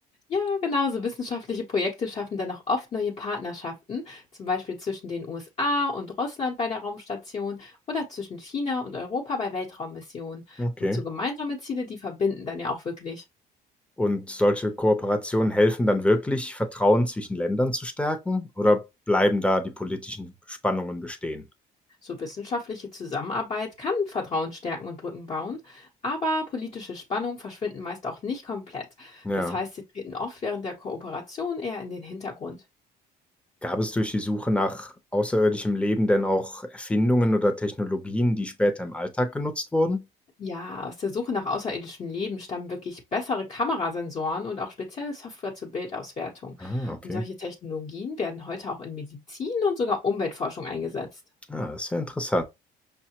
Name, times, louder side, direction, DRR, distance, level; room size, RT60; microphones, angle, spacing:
voice 1, 0.3-13.2 22.0-32.6 40.4-51.2, left 4 dB, 40° left, 0.9 m, -31 dB
voice 2, 10.6-11.0 14.0-21.4 29.2-29.6 33.6-40.0 46.6-47.2 51.5-52.4, left 1 dB, 5° left, 0.7 m, -25 dB
5.6 x 2.1 x 2.8 m
cardioid pair, 110°, 17 cm